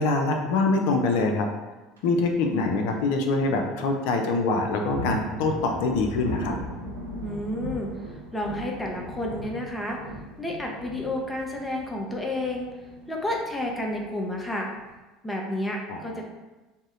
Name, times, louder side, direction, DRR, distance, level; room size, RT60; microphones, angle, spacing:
voice 1, 0.0-1.5 2.0-6.6 15.9-16.2, left 3 dB, 65° left, 4 dB, 0.4 m, -24 dB
sound 1, 2.0-2.3 2.9-3.0 3.4-3.5 4.6-14.9, right 1 dB, 90° right, 0.5 m, -38 dB
voice 2, 7.2-7.9 8.3-10.0 10.4-12.7 13.1-14.7 15.2-16.2, left 1 dB, 15° left, 0 dB, 0.6 m, -30 dB
2.7 x 2.1 x 3.6 m, 1.1 s
hypercardioid pair, 70°, 0 cm